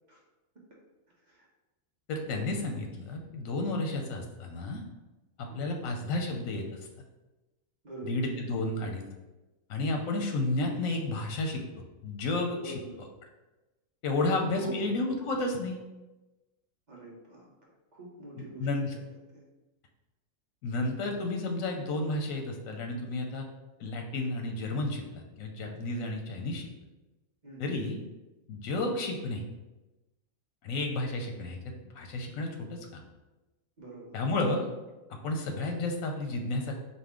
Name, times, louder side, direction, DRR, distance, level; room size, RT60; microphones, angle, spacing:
voice 1, 2.1-4.8 5.4-6.6 8.0-9.0 9.7-11.6 12.0-12.7 14.0-15.8 18.6-18.9 20.6-23.5 23.8-26.6 27.6-28.0 28.5-29.4 30.6-33.0 34.1-34.7 35.2-36.7, left 2 dB, 85° left, 3 dB, 1.0 m, -32 dB
voice 2, 5.5-5.8 7.8-8.2 12.6-12.9 14.5-14.9 16.9-17.5 17.9-18.7 19.3-19.4 27.4-27.7 33.8-34.2, right 2 dB, 35° right, -4 dB, 1.0 m, -44 dB
4.2 x 2.7 x 3.6 m, 1.1 s
omnidirectional pair, 1.4 m